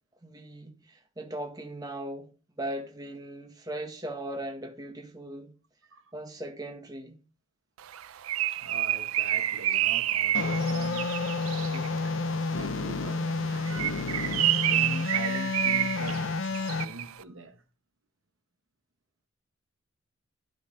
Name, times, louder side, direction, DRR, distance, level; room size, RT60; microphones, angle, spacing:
voice 1, 0.2-2.3 2.6-5.5 6.1-7.1, right 1 dB, 20° right, 1.4 m, -38 dB
Bird, 7.9-12.0 13.6-17.1, right 13 dB, 90° right, 0.5 m, -29 dB
voice 2, 8.5-11.2 11.6-12.2 12.5-17.6, right 2 dB, 70° right, 1.4 m, -43 dB
sound 1, 10.3-16.8, left 3 dB, 65° left, 0.6 m, -30 dB
12.0 x 4.0 x 5.3 m
head